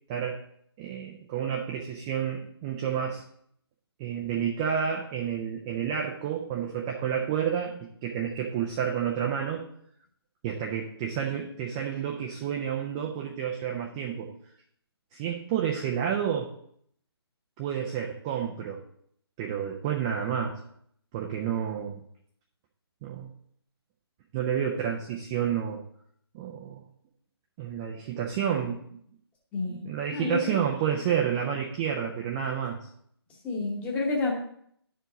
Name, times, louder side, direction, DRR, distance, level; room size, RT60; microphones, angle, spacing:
voice 1, 0.1-0.4 0.8-3.2 4.0-9.6 10.4-14.3 15.1-16.5 17.6-18.8 19.4-20.6 21.1-22.0 23.0-23.3 24.3-25.8 26.3-26.8 27.6-28.9 29.7-32.9, right 8 dB, 10° right, 0 dB, 0.4 m, -30 dB
voice 2, 29.5-29.8 30.1-30.4 33.4-34.3, left 3 dB, 10° left, 0 dB, 1.0 m, -29 dB
11.0 x 4.7 x 4.0 m, 0.67 s
figure-of-eight pair, 150°, 14 cm